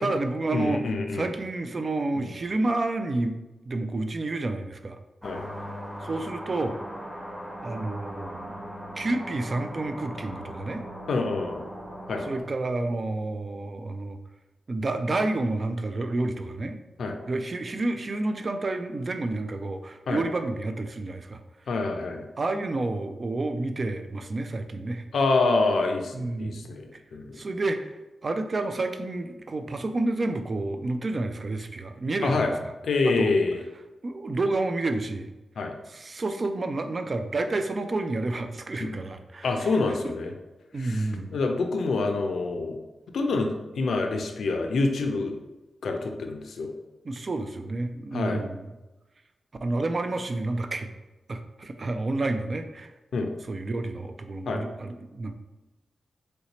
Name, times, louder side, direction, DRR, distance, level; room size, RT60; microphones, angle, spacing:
voice 1, 0.0-0.8 1.1-3.4 3.7-5.0 6.0-6.8 7.6-8.6 9.0-10.8 12.3-14.2 14.7-16.8 17.3-21.4 22.4-25.0 26.1-26.7 26.9-27.0 27.3-28.0 28.2-32.5 33.1-33.3 34.0-35.3 35.9-39.7 40.0-40.1 40.7-41.4 47.0-48.7 49.6-50.9 51.3-52.9 53.5-55.3, right 2 dB, 50° right, 7 dB, 0.3 m, -29 dB
voice 2, 0.5-1.3 2.1-2.3 5.2-5.4 11.1-11.6 12.1-12.2 17.0-17.2 20.1-20.2 21.7-22.3 25.1-27.5 32.2-32.5 32.8-33.6 35.6-35.7 38.8-38.9 39.4-40.3 40.8-42.8 43.1-45.4 45.8-46.7 48.1-48.4 53.1-53.3 54.5-54.6, left 3 dB, 75° left, 4 dB, 0.4 m, -26 dB
sound 1, 5.2-12.4, equal, ahead, 0.8 m, -39 dB
3.2 x 2.7 x 2.9 m, 1.1 s
cardioid pair, 50°, 0 cm